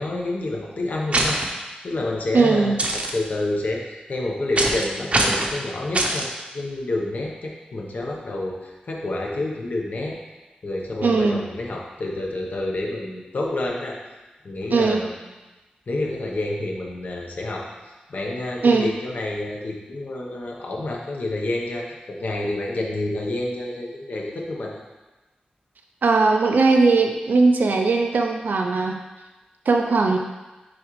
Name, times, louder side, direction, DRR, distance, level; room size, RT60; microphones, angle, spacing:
voice 1, 0.0-1.4 1.8-6.3 6.5-10.2 10.6-14.0 14.4-15.1 15.9-24.8, left 2 dB, 65° left, -1 dB, 1.0 m, -28 dB
sound 1, 1.1-1.5 2.8-3.1 4.6-4.8 5.1-5.5 5.9-6.3, right 2 dB, 45° right, 0.7 m, -22 dB
voice 2, 2.3-2.8 11.0-11.4 14.7-15.0 18.6-18.9 26.0-29.0 29.7-30.2, right 3 dB, 80° right, 2 dB, 0.5 m, -19 dB
6.2 x 4.9 x 3.2 m, 1.1 s
wide cardioid pair, 105°, 3 cm